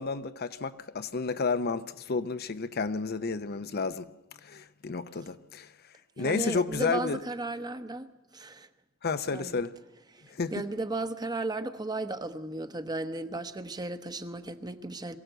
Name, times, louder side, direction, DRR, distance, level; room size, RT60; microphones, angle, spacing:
voice 1, 0.0-4.1 4.4-5.7 6.2-7.2 9.0-9.7 10.3-10.6, left 4 dB, 50° left, 0.7 m, -31 dB
voice 2, 6.2-8.1 8.3-8.7 9.3-9.6 10.5-15.2, right 2 dB, 20° right, 1.0 m, -35 dB
22.5 x 16.0 x 7.9 m
head